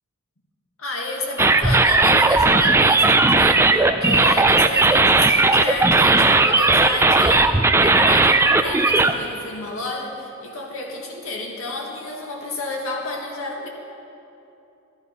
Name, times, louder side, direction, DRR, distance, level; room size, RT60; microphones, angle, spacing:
voice 1, 0.8-13.7, left 2 dB, 85° left, 0 dB, 2.0 m, -31 dB
sound 1, 1.4-9.1, right 3 dB, 10° right, 0.4 m, -16 dB
14.0 x 12.5 x 5.5 m, 2.8 s
head